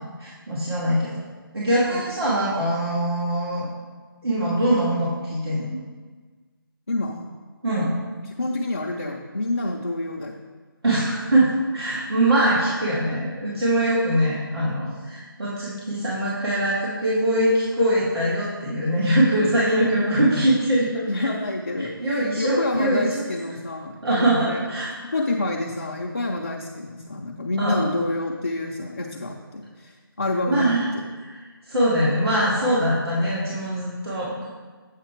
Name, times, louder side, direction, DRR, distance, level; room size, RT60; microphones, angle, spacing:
voice 1, 0.2-1.2 1.5-3.7 4.2-5.8 7.6-7.9 10.8-21.3 21.8-23.3 24.0-25.1 27.6-27.9 30.5-30.9 31.2-31.3 31.7-34.5, right 1 dB, 90° right, -8 dB, 2.2 m, -22 dB
voice 2, 6.9-7.3 8.4-10.4 20.0-20.3 21.1-21.9 22.4-24.6 25.0-31.0, left 2 dB, 35° left, -1 dB, 0.5 m, -28 dB
8.2 x 5.8 x 4.4 m, 1.4 s
figure-of-eight pair, 180°, 12 cm